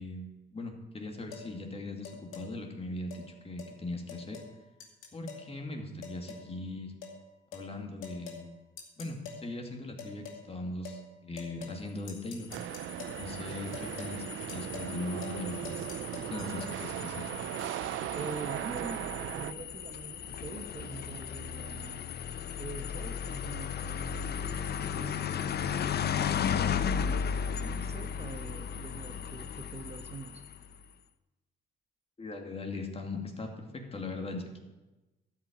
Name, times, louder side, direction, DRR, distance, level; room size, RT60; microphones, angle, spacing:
voice 1, 0.0-4.4 5.1-6.9 7.5-8.5 9.0-12.5 13.1-15.7 16.2-17.2 32.2-34.6, left 2 dB, 30° left, 2 dB, 2.3 m, -39 dB
sound 1, 1.3-1.5 2.0-2.5 3.1-3.2 3.6-3.7 4.1-4.5 4.8-5.5 6.0-6.5 7.0-7.2 7.5-7.7 8.0-8.4 8.8-9.4 10.0-10.4 10.8-11.0 11.4-11.8 12.1-13.2 13.7-14.1 14.5-14.9 15.2-15.4 15.6-16.7, left 6 dB, 90° left, 2.5 m, -45 dB
sound 2, 12.2-30.8, left 7 dB, 55° left, 0.7 m, -36 dB
sound 3, 12.5-19.5, right 14 dB, 80° right, 0.4 m, -38 dB
voice 2, 18.1-19.0 19.3-22.1 22.6-24.5 24.9-25.9 26.6-30.4, right 4 dB, 30° right, 7 dB, 0.9 m, -44 dB
12.5 x 5.8 x 9.0 m, 1.1 s
cardioid pair, 90°, 20 cm